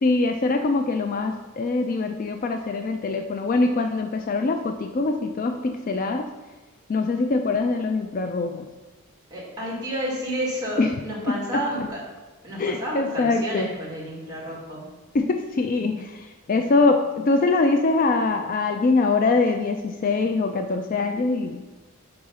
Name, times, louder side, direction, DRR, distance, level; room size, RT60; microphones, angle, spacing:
voice 1, 0.0-6.3 6.9-8.6 10.8-10.9 11.5-11.6 12.6-13.7 15.1-21.6, left 3 dB, 40° left, 6 dB, 0.3 m, -23 dB
voice 2, 9.3-12.0 12.4-14.9, equal, 20° right, -5 dB, 1.9 m, -30 dB
4.8 x 4.8 x 5.5 m, 1.2 s
head